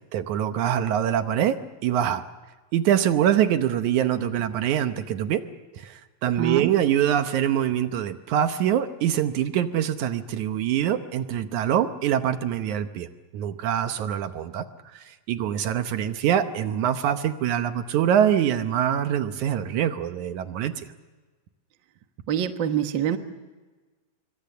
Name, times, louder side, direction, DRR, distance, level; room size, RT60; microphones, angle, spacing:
voice 1, 0.1-2.2 2.7-5.4 5.7-20.9, right 10 dB, 70° right, 9 dB, 2.2 m, -24 dB
voice 2, 6.4-6.7 22.3-23.2, right 9 dB, 55° right, 7 dB, 1.4 m, -25 dB
26.0 x 24.0 x 6.7 m, 1.3 s
omnidirectional pair, 3.8 m